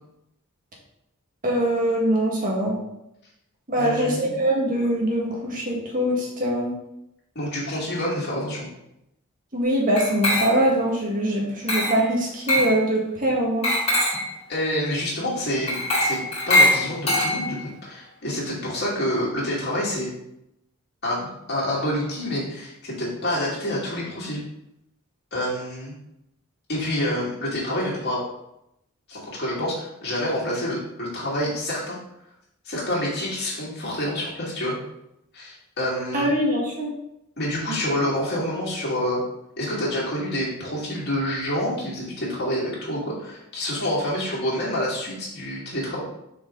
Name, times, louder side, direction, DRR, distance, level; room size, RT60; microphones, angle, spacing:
voice 1, 1.4-2.8 3.7-6.7 9.5-13.7 36.1-36.9, right 1 dB, 40° right, -2 dB, 1.7 m, -23 dB
voice 2, 3.8-4.4 7.3-8.7 14.5-16.2 16.5-20.1 21.0-24.4 25.3-25.9 26.7-28.2 29.1-32.0 32.6-34.7 35.3-36.3 37.4-39.2 39.6-46.0, left 1 dB, 50° left, -6 dB, 2.6 m, -27 dB
Glass, 10.0-10.8 11.7-12.1 12.5-12.8 13.6-14.3 15.7-17.7, left 1 dB, 30° left, 2.3 m, -22 dB
6.2 x 4.8 x 3.9 m, 0.83 s
head